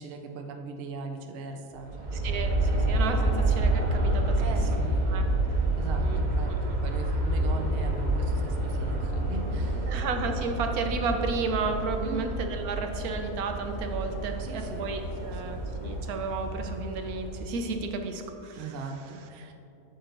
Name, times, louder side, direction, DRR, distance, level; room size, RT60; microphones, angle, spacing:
voice 1, 0.0-2.2 4.4-5.1 5.8-10.0 12.0-12.3 14.4-14.9 15.2-15.5 18.5-19.5, right 4 dB, 55° right, 3 dB, 0.7 m, -39 dB
Aircraft, 1.8-17.8, right 1 dB, 30° right, 1.1 m, -28 dB
voice 2, 2.2-4.4 4.7-4.8 5.1-5.3 6.0-6.2 6.5-6.8 9.9-18.7, right 4 dB, 75° right, 5 dB, 1.1 m, -33 dB
sound 1, 7.3-16.0, left 1 dB, 50° left, 1.8 m, -45 dB
8.6 x 7.9 x 2.6 m, 2.8 s
omnidirectional pair, 1.6 m